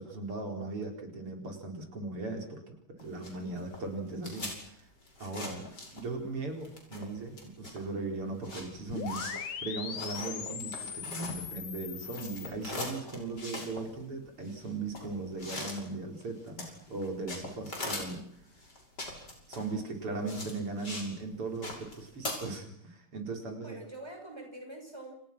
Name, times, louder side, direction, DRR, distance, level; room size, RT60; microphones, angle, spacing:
voice 1, 0.0-4.9 5.2-9.2 9.6-10.7 11.0-18.2 19.5-23.8, right 3 dB, 80° right, 3 dB, 5.4 m, -38 dB
sound 1, 3.0-6.3 6.6-11.7 12.0-21.1 21.4-22.3, left 2 dB, 50° left, 7.2 m, -42 dB
voice 2, 3.3-3.7 9.3-9.6 10.2-10.6 20.1-20.5 23.6-25.1, right 1 dB, 10° right, 3 dB, 6.3 m, -47 dB
sound 2, 8.9-12.5, left 7 dB, 70° left, 2.3 m, -39 dB
29.5 x 29.0 x 6.2 m, 0.64 s
omnidirectional pair, 2.4 m